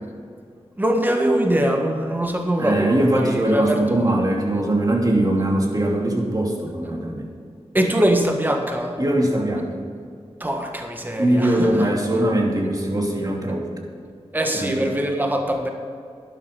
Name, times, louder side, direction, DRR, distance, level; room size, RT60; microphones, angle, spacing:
voice 1, 0.8-3.8 7.7-9.0 10.4-11.9 14.3-15.7, right 1 dB, 15° right, 3 dB, 1.5 m, -22 dB
voice 2, 2.6-7.3 9.0-9.7 11.2-13.7 14.5-14.9, right 1 dB, 35° right, -1 dB, 2.7 m, -21 dB
12.0 x 11.0 x 5.1 m, 2.3 s
wide cardioid pair, 70°, 11 cm